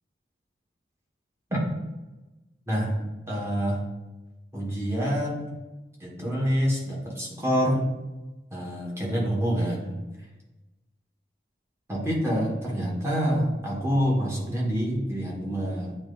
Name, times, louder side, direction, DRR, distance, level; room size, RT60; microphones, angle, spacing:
voice 1, 2.7-3.8 4.5-5.5 6.0-7.9 8.5-10.0 11.9-16.0, equal, 15° right, -4 dB, 1.3 m, -27 dB
8.8 x 2.9 x 3.8 m, 1.1 s
head